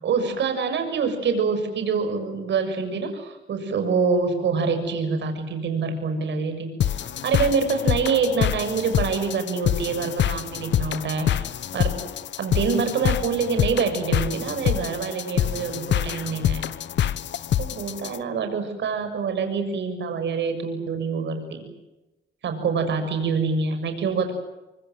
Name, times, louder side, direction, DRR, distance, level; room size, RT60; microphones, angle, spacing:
voice 1, 0.0-12.0 12.4-16.7 17.6-21.6 22.4-24.3, right 5 dB, 65° right, 7 dB, 6.9 m, -26 dB
sound 1, 6.8-18.2, left 10 dB, 65° left, 1.1 m, -26 dB
26.0 x 24.5 x 7.8 m, 1.0 s
cardioid pair, 90°, 20 cm